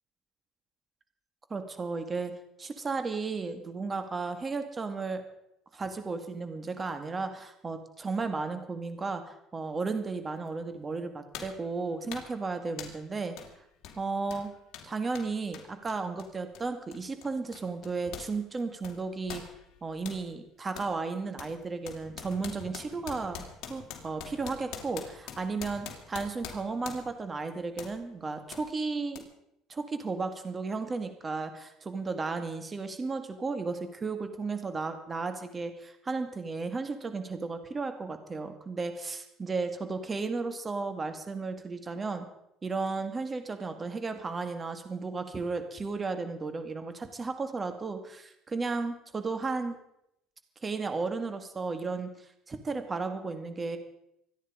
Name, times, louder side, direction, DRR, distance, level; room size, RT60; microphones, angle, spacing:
voice 1, 1.5-2.3 2.6-5.2 5.7-13.4 14.0-14.5 14.8-19.4 19.8-23.4 23.7-29.2 29.7-42.3 42.6-49.8 50.6-52.1 52.5-53.8, right 4 dB, 25° right, 8 dB, 2.2 m, -34 dB
sound 1, 10.5-10.6 11.3-11.6 12.1-12.4 12.8-13.1 13.4-13.5 13.8-18.3 18.6-20.2 20.8-20.9 21.4-27.2 27.8-28.0 28.5-28.7 29.1-29.2, left 8 dB, 65° left, 3.3 m, -44 dB
26.0 x 10.0 x 5.2 m, 0.79 s
cardioid pair, 120°, 0 cm